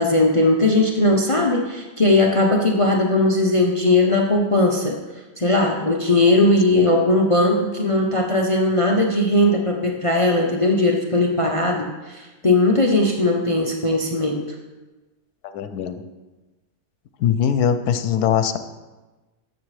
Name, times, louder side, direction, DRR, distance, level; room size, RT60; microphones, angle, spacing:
voice 1, 0.0-5.0 5.4-14.4, left 2 dB, 45° left, 1 dB, 0.4 m, -18 dB
voice 2, 15.5-16.0 17.2-18.6, left 8 dB, 75° left, 10 dB, 1.1 m, -21 dB
13.5 x 7.0 x 3.3 m, 1.2 s
omnidirectional pair, 1.7 m